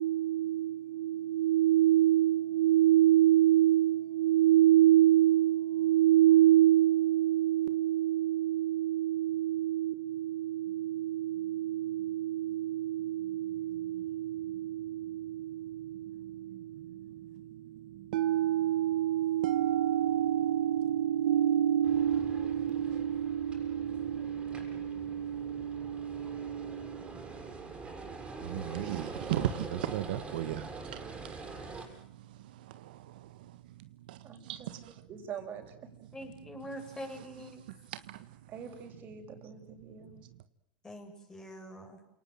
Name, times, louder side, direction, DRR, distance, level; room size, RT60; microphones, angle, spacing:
voice 1, 0.0-27.4 28.4-31.0 32.6-33.5 34.1-34.2 34.4-34.9 37.9-38.2, right 12 dB, 75° right, 1.5 m, -28 dB
sound 1, 21.8-31.9, right 4 dB, 20° right, 6.9 m, -44 dB
voice 2, 34.2-34.8 35.1-35.9 38.5-40.2, right 7 dB, 40° right, 6.1 m, -45 dB
voice 3, 36.1-37.6 40.8-42.0, equal, 15° left, 7.6 m, -44 dB
29.0 x 19.0 x 9.1 m
supercardioid pair, 115°, 5 cm